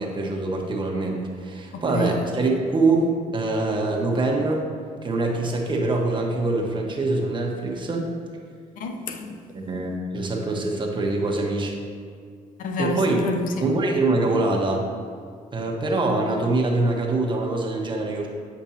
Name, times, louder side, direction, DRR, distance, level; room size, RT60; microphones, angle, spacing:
voice 1, 0.0-4.7 5.0-8.1 9.5-11.7 12.8-13.2 13.6-14.9 15.5-18.3, right 2 dB, 35° right, 0 dB, 1.3 m, -24 dB
voice 2, 1.7-2.2 8.8-9.4 12.6-13.6, left 3 dB, 70° left, 5 dB, 0.7 m, -28 dB
8.9 x 5.3 x 2.8 m, 2.2 s
supercardioid pair, 75°, 14 cm